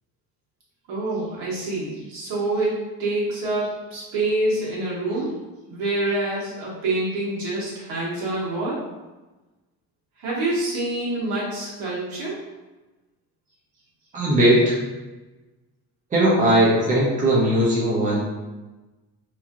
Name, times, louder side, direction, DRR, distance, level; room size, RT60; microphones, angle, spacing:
voice 1, 0.9-5.3 5.7-8.8 10.2-12.4, right 2 dB, 75° right, -6 dB, 1.3 m, -26 dB
voice 2, 14.1-14.8 16.1-18.2, right 1 dB, 20° right, -6 dB, 0.7 m, -18 dB
3.0 x 2.7 x 2.4 m, 1.1 s
cardioid pair, 145°, 35 cm